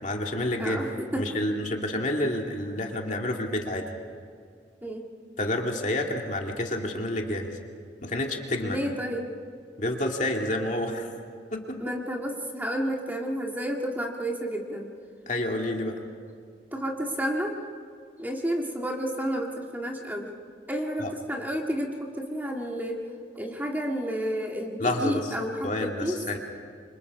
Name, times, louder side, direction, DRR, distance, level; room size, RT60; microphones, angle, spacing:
voice 1, 0.0-0.8 1.2-3.9 5.4-7.6 8.0-8.8 9.8-11.1 11.5-11.8 15.3-16.0 24.8-25.2 25.6-26.4, left 1 dB, 40° left, 1 dB, 2.4 m, -29 dB
voice 2, 0.6-1.5 4.8-5.1 8.6-9.3 11.8-14.9 16.7-17.6 18.2-20.3 20.7-23.0 23.4-26.2, equal, 10° right, 0 dB, 1.9 m, -31 dB
29.0 x 25.5 x 4.9 m, 2.2 s
head